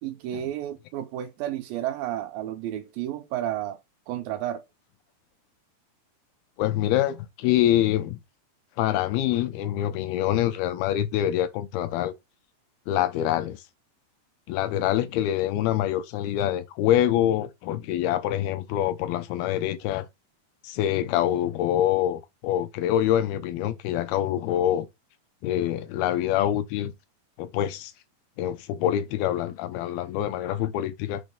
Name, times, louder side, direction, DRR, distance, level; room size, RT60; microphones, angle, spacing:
voice 1, 0.0-3.8 4.1-4.6, right 12 dB, 80° right, 2.2 m, -31 dB
voice 2, 6.6-8.2 8.8-12.1 12.9-13.6 14.5-20.1 20.6-24.9 25.4-26.9 27.4-27.9 28.4-31.2, left 12 dB, 85° left, 2.5 m, -25 dB
6.4 x 3.0 x 5.1 m
omnidirectional pair, 4.5 m